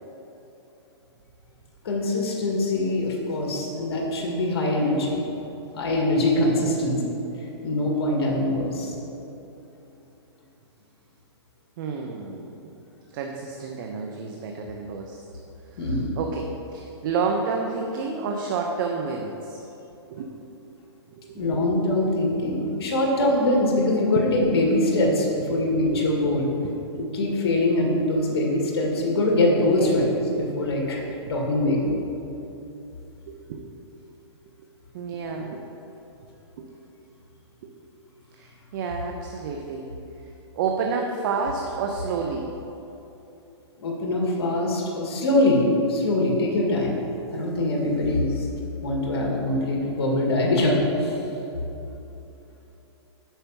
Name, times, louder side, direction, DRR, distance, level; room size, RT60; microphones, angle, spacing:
voice 1, 1.8-5.3 5.7-7.0 7.6-8.9 15.8-16.1 21.3-26.5 27.0-31.0 31.3-31.8 43.8-47.0 47.3-48.5 48.8-51.1, left 1 dB, 65° left, -1 dB, 2.1 m, -23 dB
voice 2, 11.8-12.5 13.1-15.2 15.7-19.6 20.1-20.3 21.1-21.9 24.1-24.3 25.5-25.6 25.9-26.0 26.6-26.8 29.7-30.0 31.1-31.2 33.3-33.6 34.9-35.6 36.6-36.7 37.6-37.7 38.3-39.8 40.5-42.5, right 5 dB, 45° right, 2 dB, 0.8 m, -30 dB
9.1 x 5.8 x 5.9 m, 3.0 s
hypercardioid pair, 150°, 15 cm